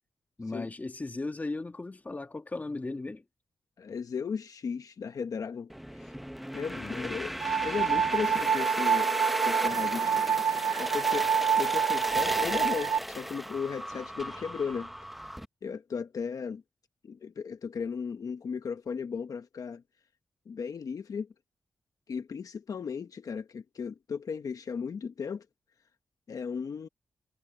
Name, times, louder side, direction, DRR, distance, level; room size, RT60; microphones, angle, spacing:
voice 1, 0.4-3.2 6.7-7.2, left 2 dB, 25° left, 1.5 m, -37 dB
voice 2, 3.8-5.7 6.0-6.1 6.5-7.4 7.6-9.1 9.4-10.5 10.8-14.9 15.6-16.6 17.0-19.8 20.5-21.3 22.1-25.5 26.3-26.9, left 6 dB, 60° left, 0.9 m, -36 dB
sound 1, 5.7-15.4, equal, ahead, 0.7 m, -35 dB
sound 2, 7.4-13.0, right 7 dB, 60° right, 0.7 m, -27 dB
wide cardioid pair, 115°, 7 cm